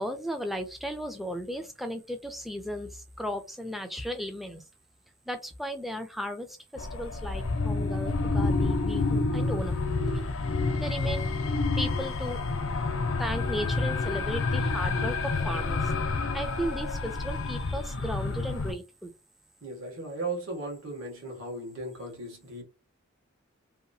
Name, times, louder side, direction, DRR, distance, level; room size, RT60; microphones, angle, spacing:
voice 1, 0.0-4.6 5.3-9.8 10.1-10.3 10.8-11.3 11.8-12.5 13.2-15.9 16.3-19.1, equal, ahead, 0.4 m, -35 dB
sound 1, 6.8-18.7, left 3 dB, 65° left, 0.5 m, -29 dB
voice 2, 19.6-22.6, right 2 dB, 65° right, 1.2 m, -36 dB
2.8 x 2.3 x 2.6 m
head